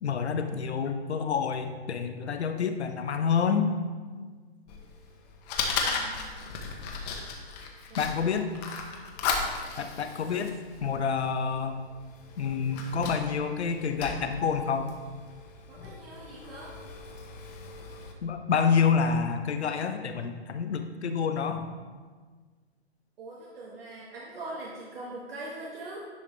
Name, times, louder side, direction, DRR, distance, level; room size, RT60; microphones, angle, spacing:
voice 1, 0.0-3.7 8.0-8.5 9.8-10.5 10.8-11.8 12.4-14.9 18.2-21.7, left 6 dB, 85° left, 7 dB, 0.8 m, -28 dB
Fire, 4.7-18.1, left 4 dB, 40° left, 1.1 m, -37 dB
voice 2, 5.8-6.5 7.9-8.0 15.7-16.7 23.2-26.1, right 2 dB, 60° right, -4 dB, 1.5 m, -42 dB
10.5 x 4.9 x 3.3 m, 1.5 s
hypercardioid pair, 130°, 32 cm